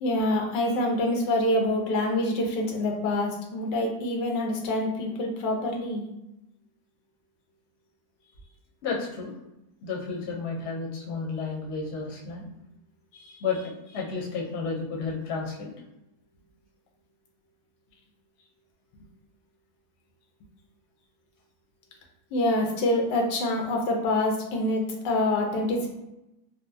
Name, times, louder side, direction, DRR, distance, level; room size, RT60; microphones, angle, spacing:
voice 1, 0.0-6.1 22.3-25.9, left 1 dB, 85° left, 1 dB, 1.4 m, -26 dB
voice 2, 8.8-9.3 9.8-12.4 13.1-15.7, left 4 dB, 50° left, -3 dB, 0.8 m, -32 dB
4.0 x 2.0 x 2.6 m, 0.88 s
omnidirectional pair, 1.9 m